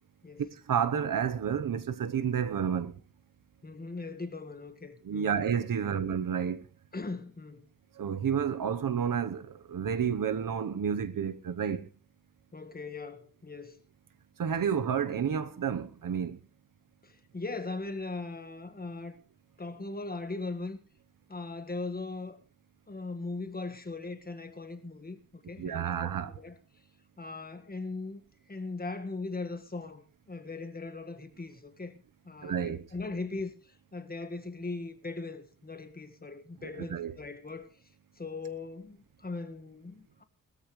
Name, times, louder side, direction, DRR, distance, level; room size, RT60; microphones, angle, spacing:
voice 1, 0.4-3.0 5.0-6.6 7.9-11.9 14.4-16.4 25.6-26.4 32.4-32.9 36.6-37.1, right 7 dB, 70° right, 1.0 m, -30 dB
voice 2, 3.6-5.3 5.8-5.9 6.9-7.7 12.5-13.8 17.0-19.2 19.6-20.8 21.3-22.4 22.9-26.6 27.2-28.2 28.5-31.9 32.2-33.5 33.9-37.7 38.2-40.2, left 3 dB, 25° left, 1.6 m, -39 dB
19.5 x 13.5 x 3.2 m
wide cardioid pair, 105°, 34 cm